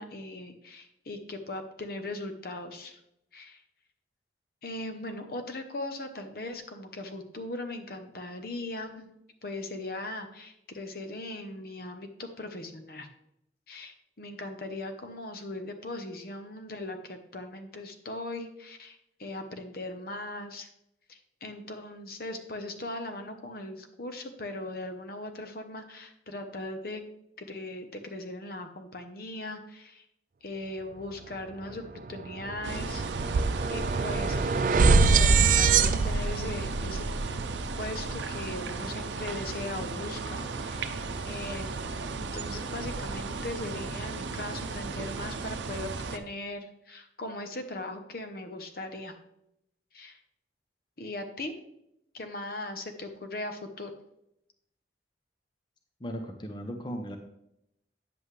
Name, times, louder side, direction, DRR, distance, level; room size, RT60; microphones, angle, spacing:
voice 1, 0.0-3.0 3.3-3.6 4.6-9.1 9.4-13.1 13.7-20.7 21.1-27.0 27.4-30.0 30.4-37.1 37.8-49.1 49.9-50.2 51.0-51.5 52.1-53.9, left 2 dB, 55° left, 6 dB, 0.9 m, -39 dB
sound 1, 31.6-31.8 32.1-38.3, right 4 dB, 50° right, 0.4 m, -25 dB
sound 2, 32.6-46.2, right 3 dB, 90° right, 0.6 m, -35 dB
voice 2, 56.0-57.2, equal, 25° left, 4 dB, 0.7 m, -37 dB
9.4 x 7.8 x 3.3 m, 0.80 s
head